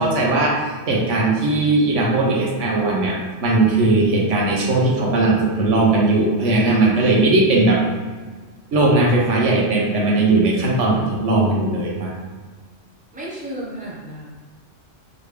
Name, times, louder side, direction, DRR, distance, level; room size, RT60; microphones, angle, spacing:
voice 1, 0.0-7.8 8.7-12.1, right 2 dB, 80° right, -2 dB, 1.2 m, -18 dB
voice 2, 13.1-14.3, right 1 dB, 5° right, -6 dB, 1.0 m, -33 dB
4.0 x 3.3 x 3.3 m, 1.4 s
omnidirectional pair, 1.2 m